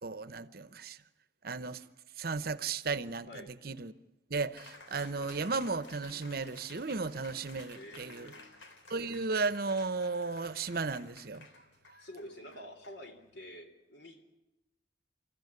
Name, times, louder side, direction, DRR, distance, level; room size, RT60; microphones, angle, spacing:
voice 1, 0.0-1.0 1.4-1.9 2.2-3.9 4.3-8.3 8.9-11.5, right 4 dB, 50° right, 0.8 m, -35 dB
Cheering, 4.6-13.5, left 3 dB, 85° left, 3.4 m, -55 dB
voice 2, 7.7-8.5 12.0-14.2, equal, 70° left, 3.7 m, -48 dB
29.0 x 14.5 x 9.7 m
head